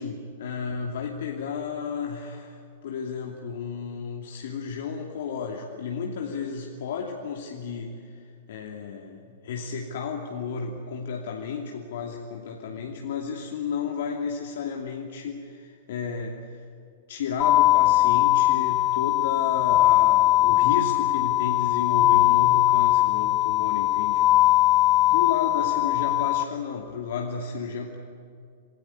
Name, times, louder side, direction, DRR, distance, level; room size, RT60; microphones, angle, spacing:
voice 1, 0.0-16.6 17.1-24.5 25.1-28.0, left 5 dB, 65° left, 0 dB, 2.7 m, -33 dB
sound 1, 17.4-26.4, left 15 dB, 30° left, 1.2 m, -20 dB
28.0 x 18.5 x 9.7 m, 2.4 s
figure-of-eight pair, 105°, 0 cm